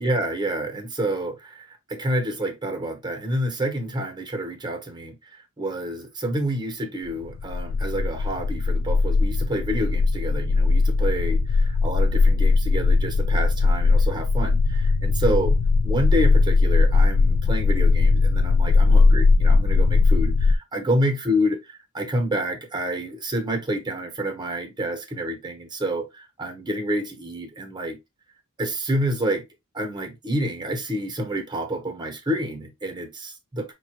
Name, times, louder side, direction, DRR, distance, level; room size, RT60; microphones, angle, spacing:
voice 1, 0.0-15.6 15.8-21.6 21.9-28.0 28.6-29.4 29.7-33.7, right 1 dB, 20° right, 1.0 m, -28 dB
sound 1, 7.2-20.5, left 3 dB, 70° left, 0.4 m, -19 dB
5.3 x 2.3 x 3.0 m
head